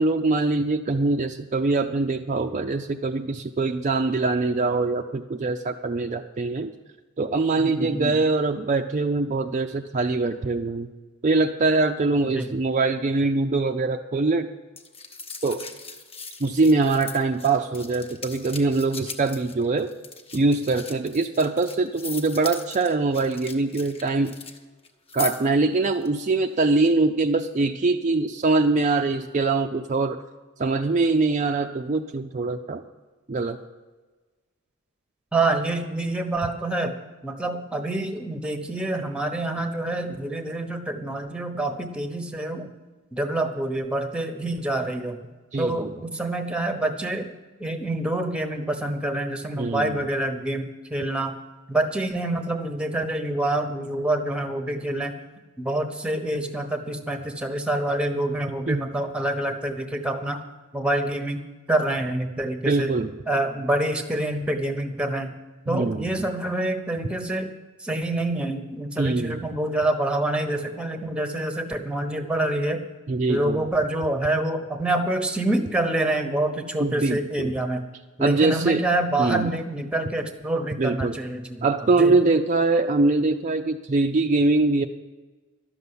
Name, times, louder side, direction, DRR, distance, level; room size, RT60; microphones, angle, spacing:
voice 1, 0.0-6.7 7.2-10.9 11.2-14.5 15.4-15.6 16.4-19.9 20.3-24.4 25.1-30.2 30.6-32.8 33.3-33.6 45.5-45.9 49.6-50.0 58.7-58.8 62.7-63.1 65.7-66.3 69.0-69.5 73.1-73.6 76.8-77.5 78.2-78.8 79.2-79.5 80.8-81.2 81.6-84.9, right 3 dB, 35° right, 4 dB, 0.5 m, -23 dB
voice 2, 7.6-8.1 12.2-12.5 35.3-37.0 37.2-42.7 43.1-45.2 45.6-47.3 47.6-51.3 51.7-55.1 55.6-60.4 60.7-61.4 61.7-62.9 63.3-65.3 65.7-67.5 67.8-72.8 73.3-77.9 78.2-81.7 82.0-82.2, right 1 dB, 5° right, 7 dB, 1.0 m, -26 dB
sound 1, 14.8-24.6 24.8-25.5 25.9-26.1, left 4 dB, 25° left, 1.0 m, -39 dB
12.0 x 6.9 x 9.6 m, 1.3 s
head